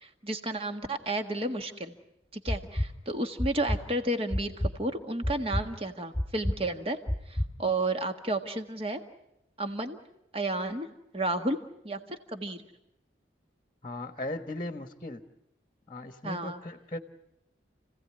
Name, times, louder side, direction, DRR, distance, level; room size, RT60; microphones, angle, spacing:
voice 1, 0.0-1.9 2.3-7.0 7.3-9.0 9.6-10.0 10.3-11.6 11.8-12.6 16.2-16.6, right 2 dB, 30° right, 7 dB, 1.6 m, -32 dB
sound 1, 2.5-2.9 3.4-3.8 4.3-4.7 5.2-5.6 6.1-6.6 7.1-7.5, left 1 dB, 5° left, 1.7 m, -28 dB
voice 2, 13.8-15.2 15.9-17.0, left 1 dB, 25° left, 8 dB, 1.3 m, -37 dB
30.0 x 17.0 x 9.8 m, 0.83 s
head